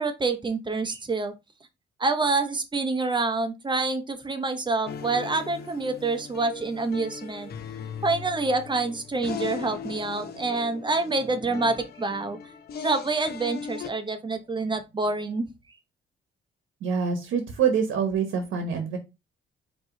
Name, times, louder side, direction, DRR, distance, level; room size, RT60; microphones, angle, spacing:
voice 1, 0.0-1.3 2.0-7.5 8.0-12.4 12.8-15.5, right 3 dB, 25° right, 8 dB, 0.9 m, -27 dB
sound 1, 4.9-13.9, left 6 dB, 55° left, 0.7 m, -39 dB
voice 2, 16.8-19.0, right 6 dB, 80° right, 6 dB, 1.0 m, -25 dB
4.6 x 2.9 x 3.8 m, 0.25 s
cardioid pair, 90°, 20 cm